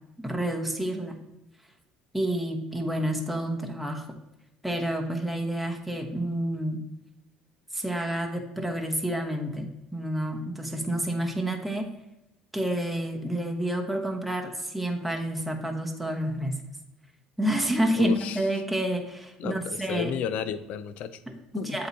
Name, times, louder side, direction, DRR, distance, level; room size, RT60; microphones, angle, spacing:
voice 1, 0.2-1.1 2.1-4.1 4.6-6.8 7.7-11.9 12.5-16.6 17.4-20.1 21.3-21.9, right 1 dB, ahead, 1 dB, 0.9 m, -29 dB
voice 2, 18.0-18.4 19.4-21.2 21.6-21.8, left 8 dB, 65° left, 13 dB, 0.5 m, -32 dB
7.9 x 2.9 x 4.1 m, 0.94 s
supercardioid pair, 95°, 2 cm